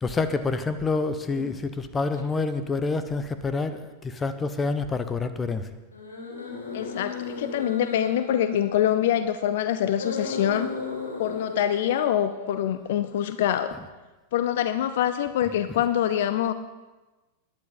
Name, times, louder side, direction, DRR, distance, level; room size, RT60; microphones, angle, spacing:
voice 1, 0.0-5.7 13.7-13.9 15.5-15.8, left 4 dB, 15° left, 10 dB, 0.9 m, -28 dB
sound 1, 1.3-1.6 2.1-2.2 5.9-9.2 9.9-12.9, left 4 dB, 75° left, 2.8 m, -36 dB
voice 2, 6.7-10.7 11.2-13.7 14.3-16.5, left 10 dB, 55° left, 12 dB, 0.5 m, -25 dB
19.0 x 11.0 x 3.8 m, 1.1 s
figure-of-eight pair, 90°, 0 cm